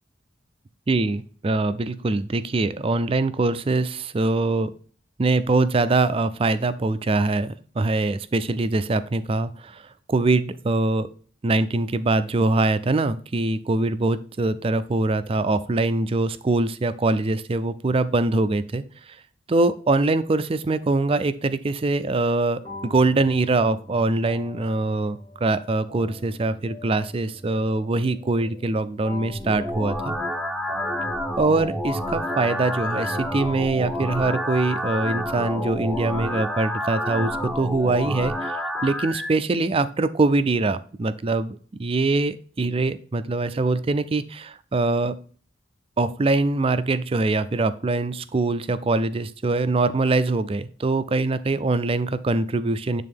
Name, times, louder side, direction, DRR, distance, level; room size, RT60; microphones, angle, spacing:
voice 1, 0.9-4.7 5.2-9.8 10.1-11.1 11.4-18.8 19.5-30.2 31.4-38.6 38.8-45.2 46.0-53.0, right 2 dB, 30° right, 14 dB, 0.4 m, -23 dB
sound 1, 22.6-39.3, left 1 dB, 20° left, 1.3 m, -43 dB
sound 2, 29.3-39.3, equal, ahead, 0.7 m, -29 dB
8.7 x 3.7 x 3.6 m, 0.43 s
head